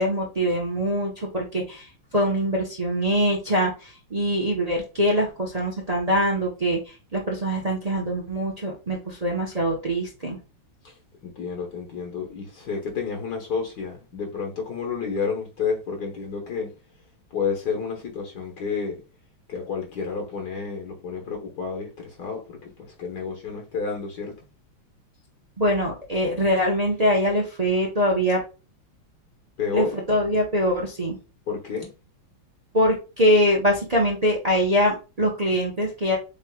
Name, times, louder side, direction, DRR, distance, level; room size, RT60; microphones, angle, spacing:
voice 1, 0.0-1.9 2.1-6.8 7.1-10.4 25.6-28.4 29.7-31.2 32.7-36.2, equal, 45° right, 0.5 m, -23 dB
voice 2, 11.2-16.7 17.3-19.0 19.5-24.3 29.6-29.9 31.5-31.9, left 5 dB, 55° left, 1.5 m, -30 dB
7.2 x 3.2 x 2.2 m
omnidirectional pair, 2.3 m